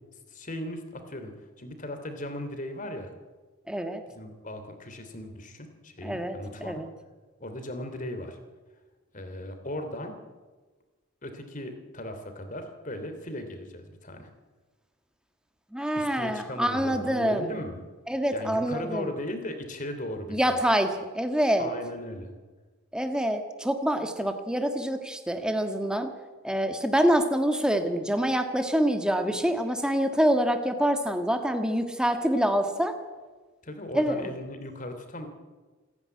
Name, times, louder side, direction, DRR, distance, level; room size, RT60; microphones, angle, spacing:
voice 1, 0.3-3.1 4.1-6.8 7.4-8.4 9.1-10.2 11.2-14.3 15.9-17.9 18.3-20.6 21.6-22.3 33.6-35.3, left 1 dB, 35° left, 7 dB, 3.0 m, -37 dB
voice 2, 3.7-4.0 6.0-6.9 15.7-17.5 18.1-19.1 20.3-21.7 22.9-26.1 26.4-33.0 33.9-34.3, equal, 5° right, 6 dB, 1.6 m, -26 dB
27.0 x 10.5 x 9.6 m, 1.3 s
head